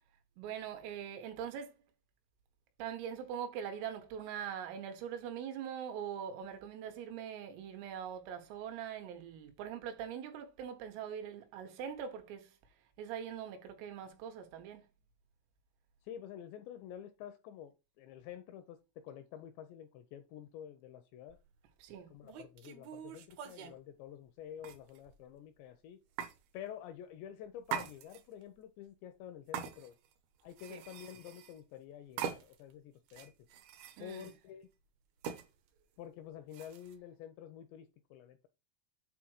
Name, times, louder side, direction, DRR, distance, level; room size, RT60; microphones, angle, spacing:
voice 1, 0.4-1.8 2.8-12.6 13.0-14.9 21.8-22.1 30.7-30.9 34.0-34.3, right 8 dB, 90° right, 4.1 m, -42 dB
voice 2, 16.0-21.4 22.1-26.0 26.5-30.0 30.4-33.3 34.0-34.7 36.0-38.5, left 10 dB, 85° left, 2.6 m, -49 dB
sound 1, 21.3-21.5 22.2-23.8 24.6-25.2 26.2-26.4 27.6-28.4 29.5-30.1 30.5-31.6 32.2-32.7 33.1-34.4 35.2-35.5 36.5-36.9, right 8 dB, 75° right, 2.4 m, -43 dB
8.5 x 3.0 x 6.4 m
omnidirectional pair, 5.7 m